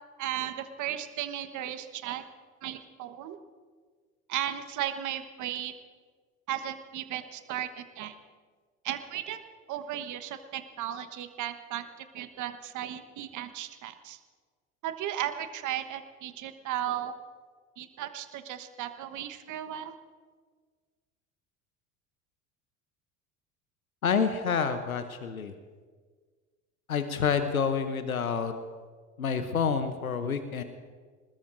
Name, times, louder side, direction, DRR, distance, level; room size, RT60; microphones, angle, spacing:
voice 1, 0.2-2.2 2.6-3.4 4.3-5.7 6.5-8.1 8.8-9.4 9.7-14.2 14.8-17.1 17.8-19.9, right 11 dB, 45° right, 9 dB, 1.3 m, -35 dB
voice 2, 24.0-25.5 26.9-28.5 29.2-30.6, left 6 dB, 90° left, 9 dB, 0.9 m, -28 dB
25.5 x 20.5 x 2.6 m, 1.5 s
figure-of-eight pair, 70°, 41 cm